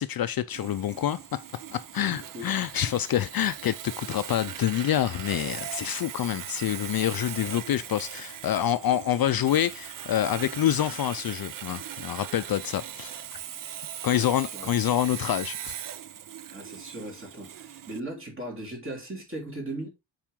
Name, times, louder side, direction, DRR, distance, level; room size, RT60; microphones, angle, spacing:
voice 1, 0.0-1.4 1.7-13.2 14.0-15.8, left 11 dB, 55° left, 0.5 m, -27 dB
Sawing, 0.5-18.0, right 10 dB, 50° right, 0.5 m, -40 dB
voice 2, 2.0-2.5 14.1-14.8 16.5-19.9, right 1 dB, 30° right, 3.5 m, -38 dB
7.4 x 4.9 x 3.6 m
wide cardioid pair, 150°, 44 cm